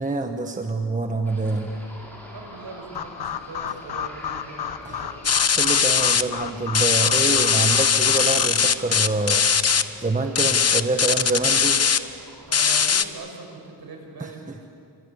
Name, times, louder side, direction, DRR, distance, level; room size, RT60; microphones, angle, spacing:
voice 1, 0.0-1.7 4.8-5.0 5.6-9.7 10.0-11.8 14.2-14.6, right 3 dB, 20° right, 4 dB, 1.3 m, -26 dB
sound 1, 1.2-12.9, equal, 5° left, 6.4 m, -46 dB
voice 2, 2.3-5.2 12.5-14.7, right 3 dB, 60° right, 2 dB, 6.3 m, -41 dB
sound 2, 2.9-8.5, left 8 dB, 65° left, 1.0 m, -33 dB
sound 3, 5.2-6.2 6.7-9.8 10.3-12.0 12.5-13.0, left 6 dB, 35° left, 0.9 m, -20 dB
27.5 x 25.0 x 8.6 m, 2.4 s
wide cardioid pair, 150°, 42 cm